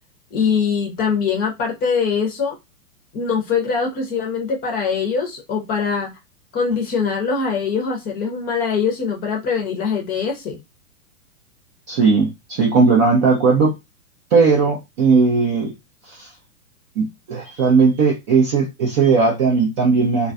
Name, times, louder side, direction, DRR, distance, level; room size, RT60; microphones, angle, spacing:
voice 1, 0.3-2.6 3.1-6.1 6.5-10.6, left 5 dB, 20° left, 0.7 m, -22 dB
voice 2, 11.9-13.7 14.3-15.7 16.2-16.3 17.0-20.3, right 4 dB, 20° right, 0.4 m, -17 dB
2.3 x 2.3 x 2.5 m
figure-of-eight pair, 105°, 44 cm